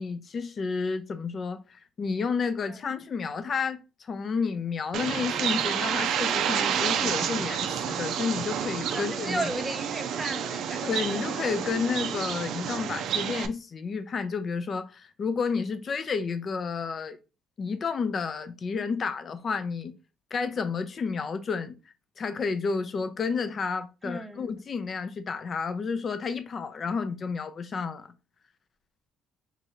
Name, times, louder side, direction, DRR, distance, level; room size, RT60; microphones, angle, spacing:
voice 1, 0.0-9.5 10.8-17.2 17.6-19.9 20.3-21.8 22.2-28.1, left 5 dB, 40° left, 0.5 m, -31 dB
Bird, 4.9-13.5, right 8 dB, 65° right, 0.4 m, -29 dB
voice 2, 8.9-11.2 24.0-24.5, right 1 dB, 15° right, 0.8 m, -35 dB
3.1 x 2.8 x 3.7 m
cardioid pair, 115°, 0 cm